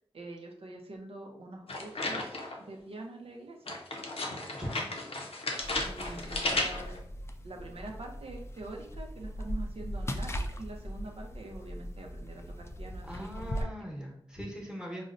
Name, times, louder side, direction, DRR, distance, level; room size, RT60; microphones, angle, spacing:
voice 1, 0.1-2.4 2.7-3.8 5.8-7.0 7.4-13.7, right 2 dB, 80° right, 0 dB, 0.5 m, -45 dB
sound 1, 1.7-2.7 3.7-7.0, left 2 dB, 80° left, 0.5 m, -34 dB
voice 2, 4.5-4.9 13.1-15.1, equal, 10° right, -2 dB, 0.9 m, -40 dB
sound 2, 5.6-13.6, equal, 25° left, 0.3 m, -39 dB
3.9 x 2.0 x 2.5 m, 0.69 s
cardioid pair, 40°, 10 cm